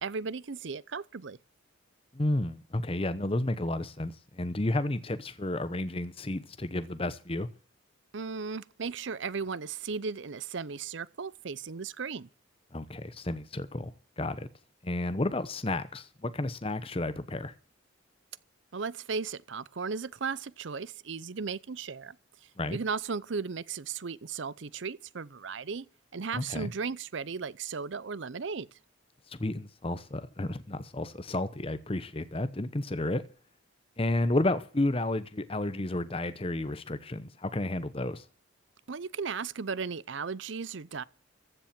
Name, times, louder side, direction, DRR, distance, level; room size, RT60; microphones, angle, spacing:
voice 1, 0.0-1.4 8.1-12.3 18.7-22.2 22.4-25.9 26.1-28.7 38.9-41.0, right 5 dB, 65° right, 0.6 m, -36 dB
voice 2, 2.1-7.5 12.7-14.5 14.8-17.5 22.6-22.8 26.3-26.7 29.3-33.2 34.0-38.2, left 1 dB, 30° left, 0.9 m, -32 dB
15.0 x 7.3 x 7.4 m
head